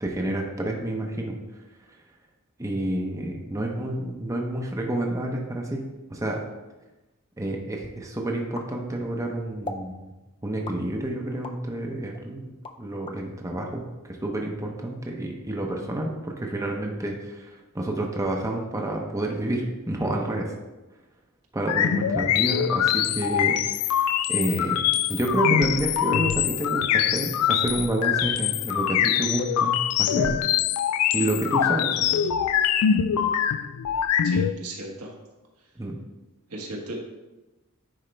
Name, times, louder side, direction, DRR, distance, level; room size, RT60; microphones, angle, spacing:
voice 1, 0.0-1.4 2.6-6.4 7.4-10.1 10.4-12.5 12.8-20.5 21.5-23.9 24.3-24.8 25.1-30.3 31.1-32.2 35.8-36.0, right 1 dB, 15° right, 1 dB, 0.7 m, -29 dB
sound 1, 8.5-9.2 9.6-9.9 10.6-11.6 12.1-13.2, left 2 dB, 25° left, 0.5 m, -39 dB
sound 2, 21.7-34.5, left 9 dB, 85° left, 0.3 m, -23 dB
voice 2, 34.2-35.1 36.5-37.0, right 2 dB, 85° right, -1 dB, 1.4 m, -36 dB
9.8 x 4.3 x 3.3 m, 1.1 s
head